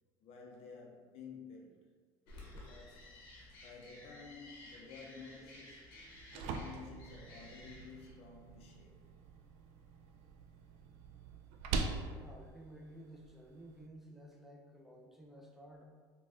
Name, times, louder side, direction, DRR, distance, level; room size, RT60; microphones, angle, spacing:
voice 1, 0.2-1.8 2.7-3.1 3.6-5.9 6.3-9.0, left 5 dB, 60° left, -1 dB, 0.5 m, -52 dB
sound 1, 2.3-8.1, left 1 dB, 85° left, 0.9 m, -54 dB
sound 2, 5.9-13.9, right 4 dB, 65° right, 0.4 m, -44 dB
voice 2, 12.0-15.8, right 1 dB, 5° right, -1 dB, 0.6 m, -54 dB
3.9 x 2.2 x 2.4 m, 1.5 s
supercardioid pair, 85°, 12 cm